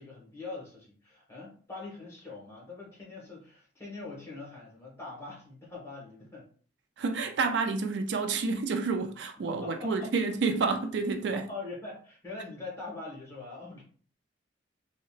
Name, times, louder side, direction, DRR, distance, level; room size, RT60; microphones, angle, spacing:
voice 1, 0.0-6.5 9.5-10.1 11.3-13.8, left 3 dB, 15° left, 1.2 m, -43 dB
voice 2, 7.0-11.4, right 4 dB, 70° right, 0.4 m, -29 dB
3.8 x 2.1 x 2.4 m
head